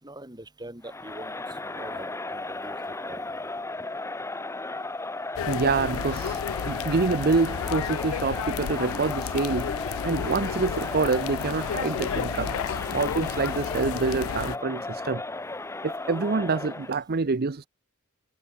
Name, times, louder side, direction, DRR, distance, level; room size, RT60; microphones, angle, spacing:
voice 1, 0.0-3.5, right 1 dB, 20° right, 4.6 m, -44 dB
Crowd, 0.8-17.0, left 2 dB, 15° left, 0.9 m, -35 dB
sound 1, 5.4-14.6, left 8 dB, 65° left, 0.3 m, -32 dB
voice 2, 5.5-6.4 6.7-9.7 10.0-15.2 15.8-17.6, right 4 dB, 45° right, 0.6 m, -26 dB
head